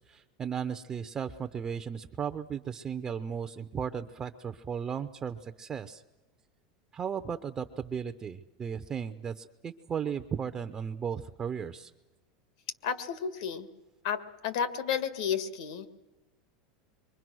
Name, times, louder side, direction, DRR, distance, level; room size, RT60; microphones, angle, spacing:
voice 1, 0.0-6.0 6.9-11.9, right 7 dB, 20° right, 9 dB, 0.7 m, -35 dB
voice 2, 12.8-13.7 14.0-15.9, left 7 dB, 70° left, 11 dB, 2.0 m, -32 dB
26.5 x 23.5 x 6.3 m, 1.1 s
supercardioid pair, 150°, 4 cm